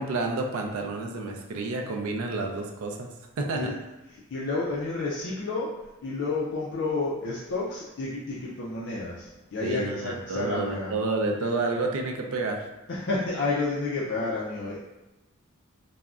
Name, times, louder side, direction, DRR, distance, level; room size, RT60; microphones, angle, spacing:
voice 1, 0.0-3.1 3.4-3.7 9.6-12.6, right 3 dB, 85° right, 2 dB, 0.4 m, -29 dB
voice 2, 4.3-5.7 6.0-10.9 12.9-14.8, left 3 dB, 55° left, -5 dB, 0.4 m, -30 dB
3.5 x 2.0 x 2.4 m, 0.97 s
head